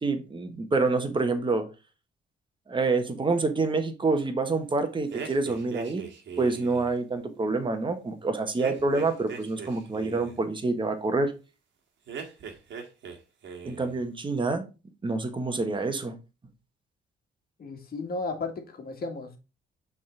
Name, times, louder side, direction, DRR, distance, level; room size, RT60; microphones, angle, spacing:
voice 1, 0.0-1.6 2.7-6.0 6.4-11.3 13.6-14.6 15.0-16.1, right 3 dB, 25° right, 6 dB, 1.2 m, -27 dB
sound 1, 5.1-6.9 8.6-10.4 12.1-13.2 13.4-14.0, right 6 dB, 70° right, 1.5 m, -39 dB
voice 2, 17.6-19.4, left 3 dB, 50° left, 4 dB, 1.8 m, -34 dB
6.2 x 3.8 x 4.4 m, 0.30 s
cardioid pair, 90°, 20 cm